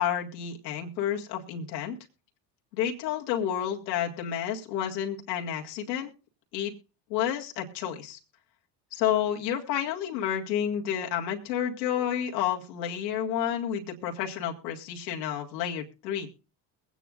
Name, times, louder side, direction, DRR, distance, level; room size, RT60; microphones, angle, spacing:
voice 1, 0.0-2.0 2.7-6.1 6.5-6.7 7.1-8.2 8.9-16.3, left 9 dB, 80° left, 0 dB, 1.9 m, -30 dB
22.5 x 9.1 x 2.4 m, 0.33 s
hypercardioid pair, 65°, 49 cm